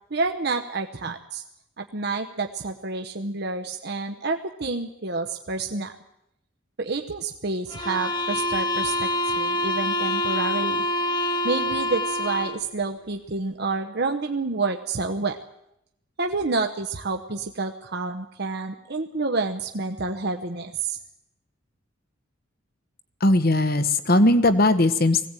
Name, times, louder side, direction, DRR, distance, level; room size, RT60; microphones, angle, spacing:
voice 1, 0.1-1.4 1.8-5.9 6.8-10.8 11.4-15.4 16.2-21.0, right 3 dB, 55° right, 4 dB, 1.0 m, -29 dB
sound 1, 7.7-12.7, left 1 dB, 25° left, 1.4 m, -26 dB
voice 2, 23.2-25.2, left 1 dB, 50° left, 12 dB, 1.3 m, -19 dB
20.0 x 16.5 x 9.1 m, 0.81 s
head